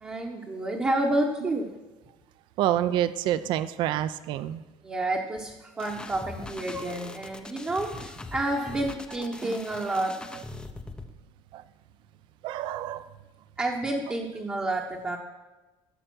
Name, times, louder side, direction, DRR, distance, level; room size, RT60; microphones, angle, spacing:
voice 1, 0.0-1.7 4.8-10.1 13.6-15.2, right 1 dB, 15° right, 0 dB, 0.9 m, -29 dB
voice 2, 2.6-4.6 11.5-11.6 12.4-13.1, right 12 dB, 45° right, 14 dB, 0.5 m, -28 dB
sound 1, 5.8-11.1, left 3 dB, 10° left, 0.5 m, -42 dB
15.0 x 6.6 x 6.1 m, 1.1 s
cardioid pair, 175°, 11 cm